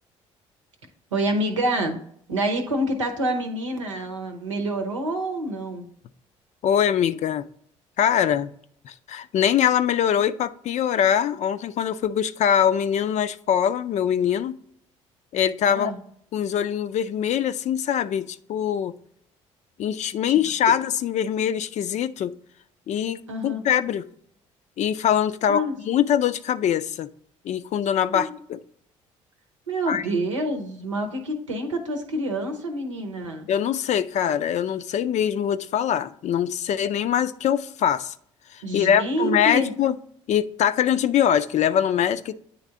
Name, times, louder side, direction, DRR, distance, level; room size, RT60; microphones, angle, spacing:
voice 1, 1.1-2.0 2.3-5.9 15.7-16.0 20.3-20.4 23.3-23.6 25.5-25.7 28.1-28.4 29.7-33.5 38.6-39.7, right 1 dB, 90° right, 0.8 m, -27 dB
voice 2, 6.6-7.5 8.0-8.5 8.8-14.6 15.3-15.9 16.3-18.9 19.8-22.3 22.9-24.0 24.8-27.1 27.4-28.6 29.9-30.0 33.5-38.1 38.5-40.0 40.3-42.3, left 9 dB, 50° left, 0.4 m, -23 dB
9.1 x 3.3 x 3.6 m
hypercardioid pair, 50°, 16 cm